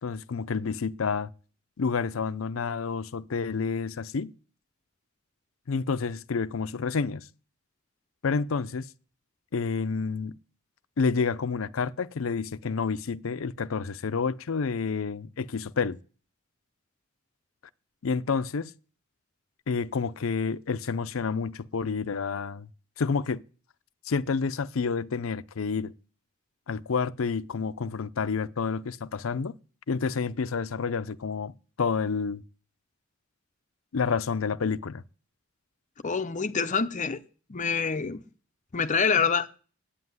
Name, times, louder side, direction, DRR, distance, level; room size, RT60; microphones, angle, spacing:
voice 1, 0.0-1.3 1.8-4.3 5.7-7.3 8.2-8.9 9.5-10.4 11.0-16.0 18.0-18.7 19.7-22.7 23.0-23.4 24.1-25.9 26.7-29.5 29.9-31.5 31.8-32.4 33.9-35.0, left 5 dB, 85° left, 0.6 m, -29 dB
voice 2, 36.0-37.2 37.5-38.2 38.7-39.6, left 5 dB, 40° left, 0.6 m, -26 dB
9.6 x 8.7 x 9.5 m
head